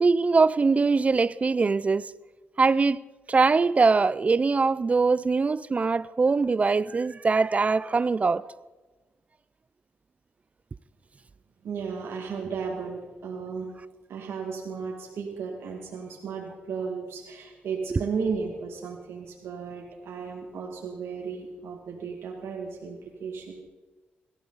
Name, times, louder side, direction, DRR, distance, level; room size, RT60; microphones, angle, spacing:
voice 1, 0.0-2.1 2.6-3.0 3.3-8.4 17.9-18.0, right 4 dB, 35° right, 0.4 m, -22 dB
voice 2, 11.6-13.7 14.1-23.6, right 5 dB, 85° right, 2.1 m, -34 dB
18.0 x 14.0 x 4.0 m
cardioid pair, 80°, 4 cm